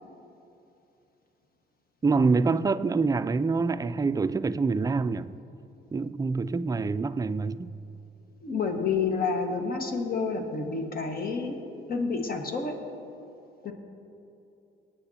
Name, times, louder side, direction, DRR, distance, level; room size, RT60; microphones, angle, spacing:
voice 1, 2.0-5.3 5.9-7.7, right 4 dB, 20° right, 0.4 m, -26 dB
voice 2, 8.4-11.6 11.9-12.7 13.6-13.7, left 4 dB, 50° left, 1.6 m, -29 dB
22.5 x 9.3 x 2.9 m
cardioid pair, 90°, 20 cm